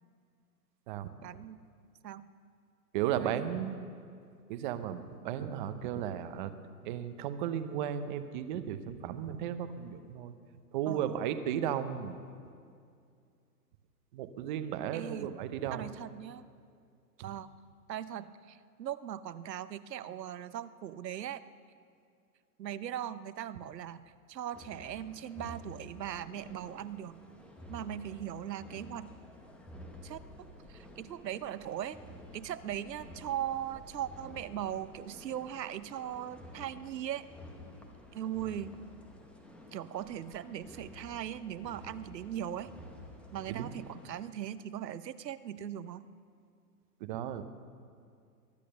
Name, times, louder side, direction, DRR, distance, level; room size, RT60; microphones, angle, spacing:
voice 1, 1.2-1.6 2.0-2.3 3.2-3.4 10.9-11.2 14.9-15.3 15.7-16.5 17.2-17.5 17.9-21.4 22.6-24.0 24.3-27.2 27.7-29.1 30.0-32.0 32.3-37.3 38.1-38.8 39.7-42.7 43.3-46.1, right 10 dB, 85° right, 15 dB, 0.8 m, -39 dB
voice 2, 2.9-3.7 4.5-6.5 6.8-10.3 10.7-12.2 14.1-15.9 17.2-17.3 43.5-43.7 47.0-47.4, right 10 dB, 30° right, 11 dB, 0.7 m, -35 dB
sound 1, 24.5-44.3, left 1 dB, ahead, 0.7 m, -51 dB
22.0 x 8.4 x 6.7 m, 2.3 s
hypercardioid pair, 140°, 49 cm